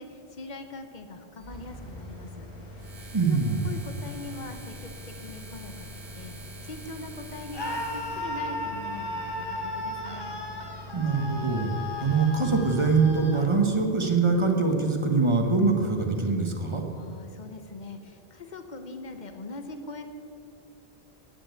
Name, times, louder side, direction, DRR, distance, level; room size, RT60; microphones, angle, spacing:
voice 1, 0.0-2.9 3.2-3.4 3.6-6.4 6.6-10.4 16.9-20.1, left 3 dB, 45° left, 7 dB, 1.0 m, -42 dB
sound 1, 1.4-15.3, left 1 dB, 90° left, 2.9 m, -45 dB
sound 2, 2.8-8.3, right 2 dB, 60° right, 1.6 m, -47 dB
voice 2, 3.1-3.7 10.9-16.8, right 4 dB, 30° right, 3 dB, 1.2 m, -24 dB
Screaming, 7.5-13.5, left 1 dB, 25° left, 1.2 m, -35 dB
9.0 x 7.7 x 8.2 m, 2.6 s
omnidirectional pair, 1.1 m